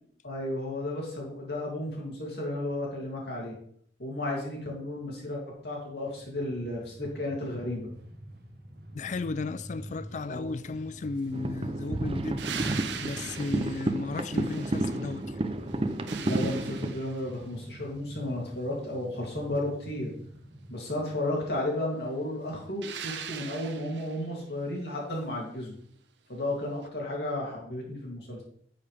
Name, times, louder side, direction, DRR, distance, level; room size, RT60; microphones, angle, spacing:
voice 1, 0.2-3.5 4.0-7.9 10.2-10.6 16.2-20.1 20.7-25.8 26.3-28.4, left 1 dB, 65° left, 2.7 m, -33 dB
Train, 6.0-21.1, equal, 60° right, 1.2 m, -47 dB
voice 2, 8.9-12.4 13.0-15.3, left 3 dB, 40° left, 0.3 m, -34 dB
sound 1, 11.3-16.9, right 2 dB, 30° right, 0.6 m, -31 dB
sound 2, 12.4-15.3 15.7-17.4 22.8-24.3 26.8-26.9, right 8 dB, 80° right, 0.8 m, -41 dB
9.7 x 6.9 x 3.4 m
head